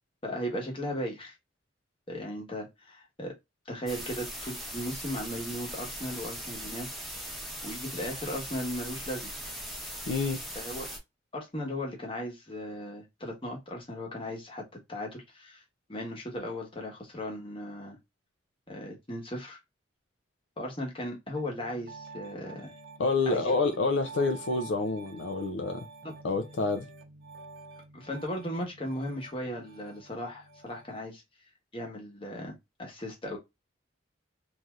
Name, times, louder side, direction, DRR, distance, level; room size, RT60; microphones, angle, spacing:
voice 1, 0.2-1.3 2.1-3.3 3.7-9.3 10.5-10.9 11.3-15.6 15.9-18.0 18.7-19.6 20.6-22.7 23.3-23.5 27.9-31.2 31.7-33.4, equal, 30° left, 1.0 m, -37 dB
sound 1, 3.9-11.0, equal, ahead, 0.9 m, -40 dB
voice 2, 10.1-10.4 23.0-25.9 26.2-26.9, left 3 dB, 75° left, 0.4 m, -28 dB
Piano, 21.3-31.0, right 3 dB, 65° right, 0.7 m, -49 dB
3.1 x 2.6 x 2.3 m
head